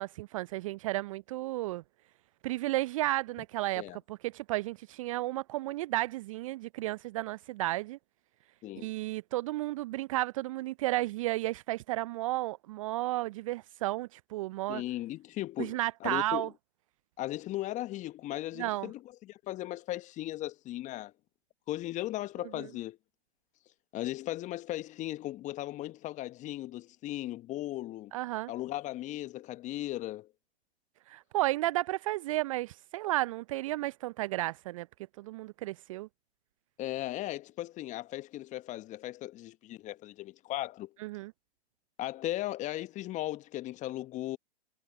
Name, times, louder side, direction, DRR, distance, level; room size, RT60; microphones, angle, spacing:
voice 1, 0.0-1.8 2.4-8.0 8.7-14.8 15.6-16.5 18.6-18.9 22.6-22.7 28.1-28.5 31.1-34.9 35.2-36.1 41.0-41.3, right 17 dB, 30° right, 0.6 m, -33 dB
voice 2, 8.6-8.9 14.7-16.5 17.2-21.1 21.7-23.0 23.9-28.1 28.5-30.3 36.8-40.9 42.0-44.4, left 15 dB, 20° left, 1.5 m, -37 dB
figure-of-eight pair, 115°, 33 cm